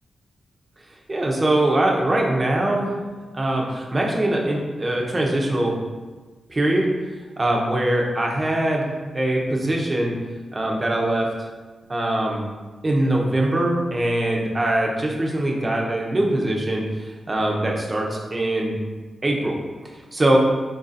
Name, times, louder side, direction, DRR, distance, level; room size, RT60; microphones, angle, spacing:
voice 1, 1.1-2.9 3.3-5.8 6.5-6.9 7.4-10.2 10.5-11.3 11.9-12.4 12.8-18.8 19.2-19.6 20.1-20.4, right 1 dB, 35° right, -1 dB, 1.0 m, -22 dB
4.1 x 2.7 x 4.2 m, 1.3 s
supercardioid pair, 45°, 0 cm